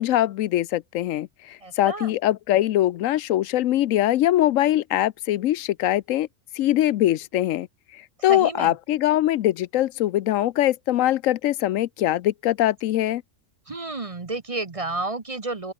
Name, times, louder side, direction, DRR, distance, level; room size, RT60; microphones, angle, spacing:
voice 1, 0.0-6.3 6.5-7.7 7.9-13.2, left 13 dB, 85° left, 1.0 m, -22 dB
voice 2, 1.6-2.1 8.3-8.7 13.7-15.7, right 2 dB, 30° right, 1.0 m, -31 dB
open air
omnidirectional pair, 1.3 m